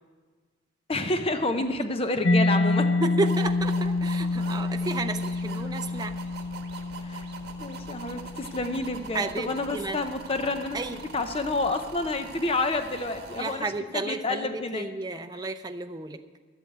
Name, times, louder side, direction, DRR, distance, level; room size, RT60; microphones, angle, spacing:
voice 1, 0.9-2.9 7.0-7.3 7.6-13.7 13.9-14.9 15.4-15.5, left 2 dB, 30° left, 8 dB, 0.6 m, -29 dB
Mallet percussion, 2.2-9.7, left 2 dB, 80° left, 0.7 m, -28 dB
voice 2, 3.0-6.1 9.1-10.0 10.7-11.0 13.4-16.2, right 3 dB, 20° right, 6 dB, 0.6 m, -32 dB
sound 1, 3.2-13.6, right 4 dB, 55° right, 1.4 m, -43 dB
12.0 x 8.1 x 7.9 m, 1.4 s
head